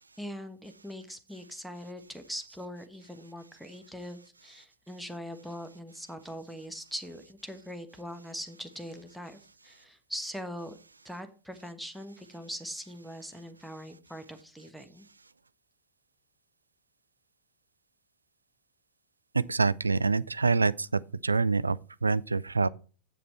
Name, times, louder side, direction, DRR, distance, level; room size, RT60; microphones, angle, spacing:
voice 1, 0.2-10.8 11.0-15.1, equal, ahead, 1.2 m, -42 dB
voice 2, 19.3-22.7, right 4 dB, 80° right, 0.3 m, -26 dB
8.1 x 7.4 x 4.2 m
figure-of-eight pair, 90°, 0 cm